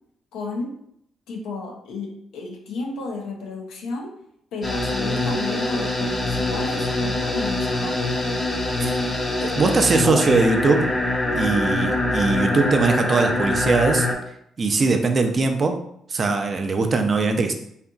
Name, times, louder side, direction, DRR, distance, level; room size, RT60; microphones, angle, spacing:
voice 1, 0.3-0.8 1.3-4.1 4.5-8.2, left 3 dB, 85° left, 1 dB, 0.5 m, -32 dB
sound 1, 4.6-14.1, left 2 dB, 35° left, 0.5 m, -24 dB
voice 2, 9.4-10.9 11.3-14.1 14.6-15.8 16.1-17.5, right 3 dB, 40° right, 5 dB, 0.4 m, -20 dB
2.7 x 2.5 x 2.3 m, 0.71 s
cardioid pair, 90°, 0 cm